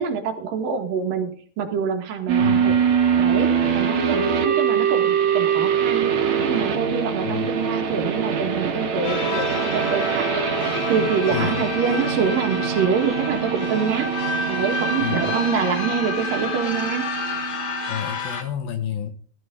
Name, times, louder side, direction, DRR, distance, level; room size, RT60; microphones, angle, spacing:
voice 1, 0.0-2.7 3.2-6.2 6.5-14.1 14.5-17.1, right 6 dB, 70° right, 4 dB, 3.3 m, -26 dB
sound 1, 2.3-18.0, right 7 dB, 55° right, 2.8 m, -23 dB
voice 2, 2.4-2.8 7.2-7.6 11.3-11.6 15.0-15.3 17.9-19.1, left 9 dB, 80° left, 7 dB, 3.5 m, -29 dB
sound 2, 9.0-18.4, left 3 dB, 50° left, 1.6 m, -30 dB
15.0 x 14.5 x 3.8 m, 0.43 s
omnidirectional pair, 4.2 m